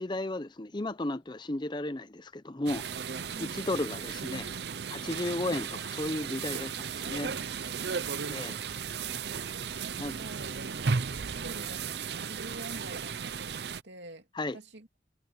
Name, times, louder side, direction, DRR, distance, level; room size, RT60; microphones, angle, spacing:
voice 1, 0.0-2.8 3.4-4.5 4.9-7.3 8.3-8.6 10.0-10.1 14.4-14.6, left 1 dB, 25° left, 0.7 m, -34 dB
sound 1, 2.7-13.8, right 6 dB, 70° right, 0.6 m, -35 dB
voice 2, 7.0-8.7 9.8-10.8 11.2-14.3 14.5-15.0, right 2 dB, 90° right, 2.8 m, -48 dB
head